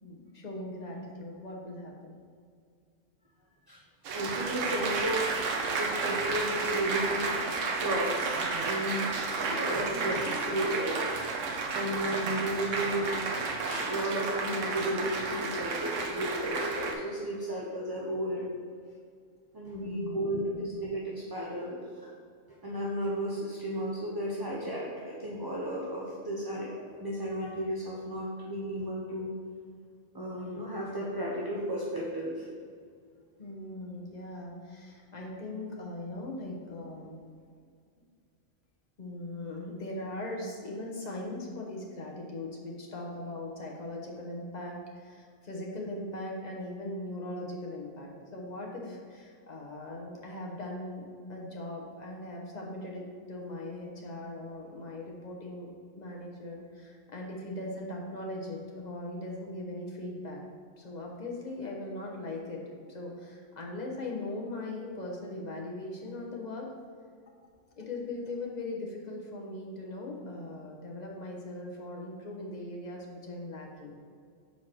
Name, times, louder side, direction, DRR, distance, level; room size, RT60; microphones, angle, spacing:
voice 1, 0.0-2.2 18.9-19.0 19.8-20.6 33.4-37.2 38.0-38.1 39.0-55.7 56.0-60.4 60.8-66.7 67.8-74.0, left 2 dB, 35° left, -1 dB, 1.0 m, -40 dB
voice 2, 4.1-5.5 5.8-7.3 7.8-11.0 11.5-13.1 13.6-18.5 19.5-22.1 22.6-29.3 30.1-32.5, right 1 dB, 25° right, -4 dB, 0.5 m, -34 dB
Applause, 4.1-16.9, right 4 dB, 80° right, 1.1 m, -32 dB
4.7 x 4.4 x 5.8 m, 2.2 s
omnidirectional pair, 1.3 m